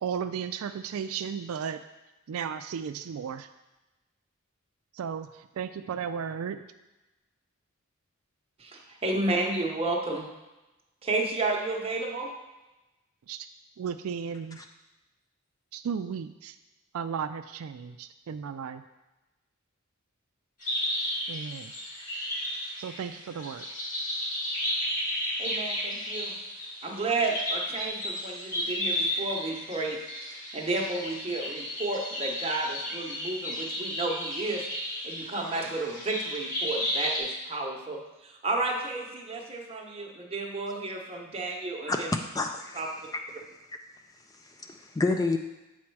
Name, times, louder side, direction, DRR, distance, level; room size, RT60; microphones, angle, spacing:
voice 1, 0.0-1.8 2.3-3.5 4.9-6.6 13.3-13.5 13.8-14.6 15.7-16.6 16.9-18.8 21.3-21.7 22.8-23.7, right 7 dB, 75° right, 10 dB, 0.3 m, -34 dB
voice 2, 8.6-10.3 11.0-12.3 25.4-26.4 26.8-34.7 35.0-42.1 42.7-42.9, right 2 dB, 25° right, 0 dB, 0.9 m, -32 dB
sound 1, 20.6-37.2, equal, 40° left, 1.9 m, -33 dB
voice 3, 42.3-42.8 43.1-43.5 44.4-45.4, left 3 dB, 15° left, 5 dB, 0.3 m, -29 dB
7.3 x 4.3 x 4.6 m, 1.0 s
head